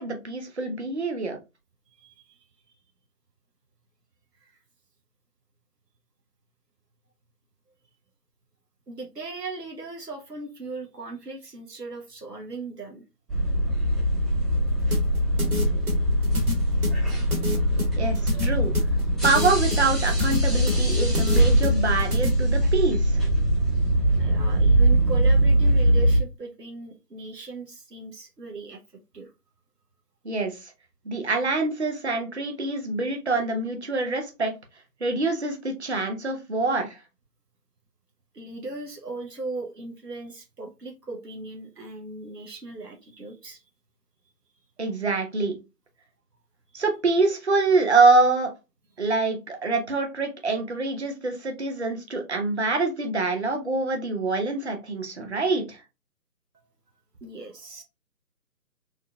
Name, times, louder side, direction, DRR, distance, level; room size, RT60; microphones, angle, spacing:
voice 1, 0.0-1.4 18.0-18.7 19.2-23.2 30.2-30.7 31.0-34.5 35.0-37.0 44.8-45.5 46.7-48.5 49.0-55.8, right 3 dB, 45° right, 0.9 m, -25 dB
voice 2, 2.0-2.5 4.4-4.5 8.9-13.0 18.1-18.2 24.2-28.8 29.1-29.3 38.3-43.6 46.7-46.8 57.2-57.8, right 3 dB, 80° right, 1.0 m, -38 dB
sound 1, 13.3-26.2, right 1 dB, ahead, 0.5 m, -22 dB
sound 2, 14.9-22.3, left 2 dB, 60° right, 1.5 m, -30 dB
3.7 x 2.7 x 2.3 m
figure-of-eight pair, 150°, 47 cm